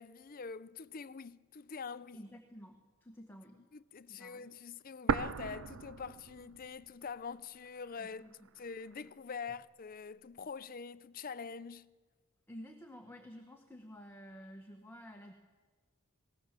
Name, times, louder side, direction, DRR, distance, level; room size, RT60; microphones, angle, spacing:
voice 1, 0.0-2.3 3.5-8.2 8.6-11.9, left 5 dB, 40° left, 0.5 m, -45 dB
voice 2, 2.1-3.6 4.1-4.5 8.0-8.5 12.5-15.3, equal, 10° left, 1.4 m, -51 dB
sound 1, 5.1-7.0 7.3-7.4 8.1-9.1, right 5 dB, 65° right, 0.5 m, -36 dB
20.5 x 19.0 x 7.5 m
head